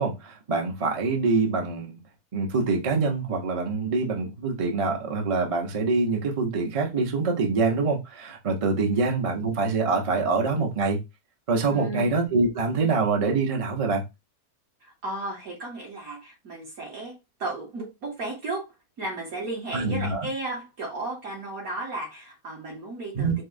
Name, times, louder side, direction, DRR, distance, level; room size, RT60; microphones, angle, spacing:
voice 1, 0.0-1.9 2.3-11.0 11.5-14.0 19.7-20.3 23.1-23.4, right 4 dB, 40° right, 0.4 m, -25 dB
voice 2, 8.7-9.0 11.7-12.1 14.8-23.4, right 2 dB, 70° right, 2.0 m, -34 dB
4.6 x 2.0 x 2.5 m
omnidirectional pair, 1.6 m